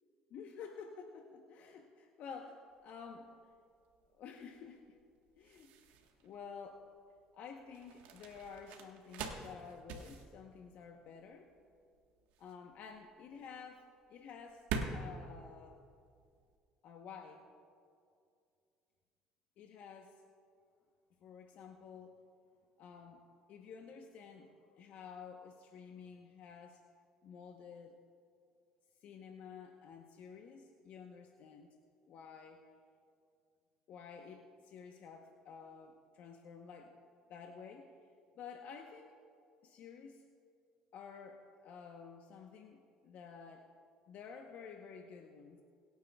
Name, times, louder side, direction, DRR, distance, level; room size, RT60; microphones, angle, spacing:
voice 1, 0.3-3.3 4.2-5.0 5.4-5.7 6.2-6.9 7.3-11.5 12.4-14.6 14.9-15.8 16.8-17.5 19.6-20.1 21.2-22.2 22.8-23.2 23.5-26.8 27.2-28.0 29.0-31.7 32.1-32.6 33.9-36.9 37.3-37.9 38.3-39.2 39.6-40.2 40.9-43.7 44.1-45.6, left 6 dB, 65° left, 3 dB, 0.9 m, -51 dB
sound 1, 2.7-16.6, right 5 dB, 75° right, 1.3 m, -46 dB
24.0 x 9.2 x 2.3 m, 2.3 s
supercardioid pair, 75°, 3 cm